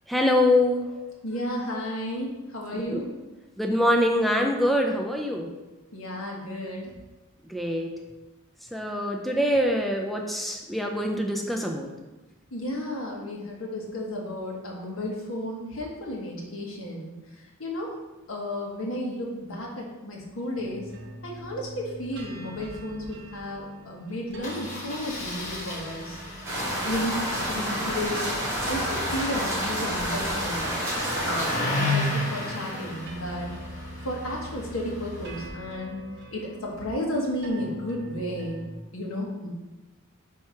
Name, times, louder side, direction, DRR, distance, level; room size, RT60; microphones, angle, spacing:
voice 1, 0.1-0.9 2.7-3.1 3.6-5.5 7.5-8.0 8.7-11.9, left 1 dB, ahead, 2 dB, 0.4 m, -24 dB
voice 2, 1.2-3.1 5.9-6.9 12.5-17.1 17.6-17.9 18.3-20.9 21.2-26.2 26.8-28.3 28.7-30.7 31.1-33.5 34.0-36.0 36.3-38.6 38.9-39.5, left 1 dB, 75° left, -2 dB, 1.5 m, -33 dB
sound 1, 20.6-38.7, right 1 dB, 55° right, 0.8 m, -43 dB
Engine starting, 22.5-22.8 23.0-23.1 23.4-23.5 24.4-35.5, left 1 dB, 35° left, 1.4 m, -34 dB
sound 2, 26.4-31.6, equal, 15° right, 2.1 m, -29 dB
4.7 x 4.6 x 5.6 m, 1.1 s
head